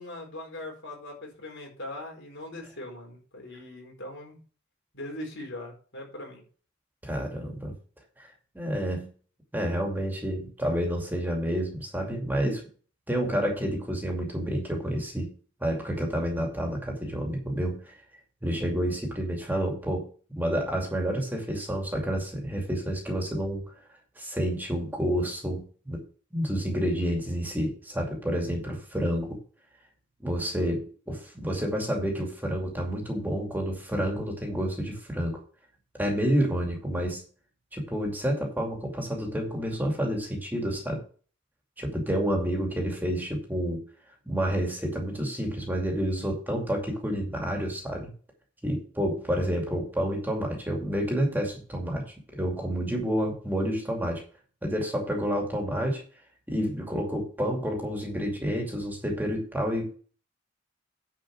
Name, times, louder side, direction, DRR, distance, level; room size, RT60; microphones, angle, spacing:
voice 1, 0.0-4.4 4.9-6.4, left 1 dB, 65° left, 0 dB, 4.7 m, -40 dB
voice 2, 7.0-7.7 8.2-8.3 8.5-9.1 9.5-12.6 13.1-15.3 15.6-17.9 18.4-20.1 20.4-23.7 24.2-26.0 26.3-29.4 30.2-35.4 36.0-37.2 37.7-41.0 41.8-43.8 44.3-48.1 48.6-52.0 52.3-54.2 54.6-56.0 56.5-59.9, equal, 10° right, 0 dB, 2.5 m, -29 dB
10.0 x 5.1 x 6.2 m, 0.40 s
head